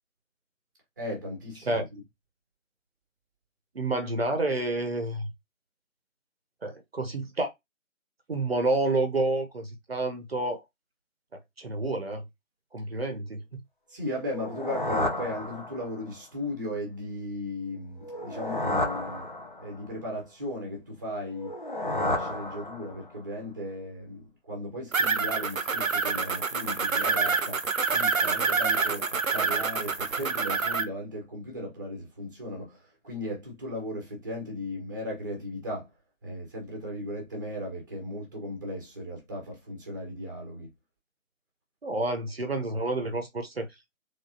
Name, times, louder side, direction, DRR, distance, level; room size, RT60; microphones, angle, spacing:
voice 1, 1.0-2.0 13.9-19.3 19.6-27.6 27.9-35.9 36.2-40.7, left 1 dB, 15° right, 0.9 m, -36 dB
voice 2, 3.7-5.3 6.6-7.5 8.3-10.6 11.6-12.2 12.7-13.4 41.8-43.7, right 2 dB, 50° right, 0.8 m, -29 dB
sound 1, 14.3-16.1 18.0-19.9 21.3-23.2, left 1 dB, 40° left, 0.5 m, -32 dB
sound 2, 24.9-30.8, right 5 dB, 75° right, 0.8 m, -27 dB
3.5 x 3.5 x 2.7 m
figure-of-eight pair, 150°, 41 cm